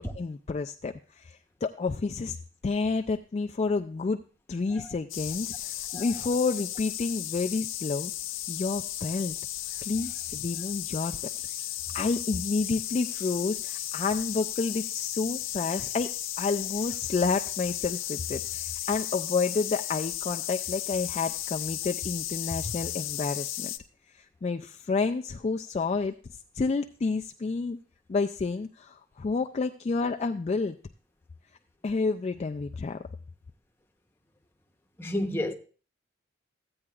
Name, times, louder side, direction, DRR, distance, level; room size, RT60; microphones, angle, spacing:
voice 1, 0.0-2.4 2.6-4.2 4.5-8.1 8.5-9.4 9.8-11.2 11.9-23.7 24.1-26.1 26.5-27.8 28.1-30.8 31.8-33.0, left 4 dB, 35° left, 0.3 m, -30 dB
sound 1, 5.1-23.8, left 13 dB, 90° left, 0.6 m, -35 dB
voice 2, 35.0-35.5, left 1 dB, 10° left, 0.9 m, -29 dB
15.0 x 8.6 x 2.4 m
head